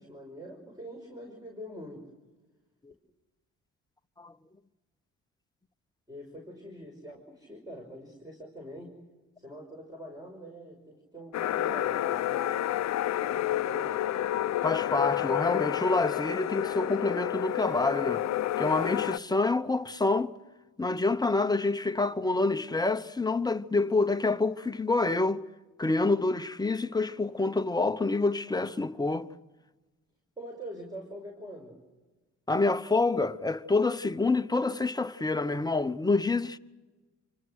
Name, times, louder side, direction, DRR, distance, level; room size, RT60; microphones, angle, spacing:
voice 1, 0.0-2.1 6.1-9.0 9.4-12.6 13.3-14.0 30.4-31.8, equal, 10° right, 5.6 m, -44 dB
sound 1, 11.3-19.2, left 13 dB, 65° left, 0.7 m, -30 dB
voice 2, 14.6-18.2 18.6-20.3 20.8-25.4 25.8-29.3 32.5-36.6, left 3 dB, 15° left, 1.0 m, -27 dB
27.0 x 25.0 x 6.5 m
cardioid pair, 90°, 30 cm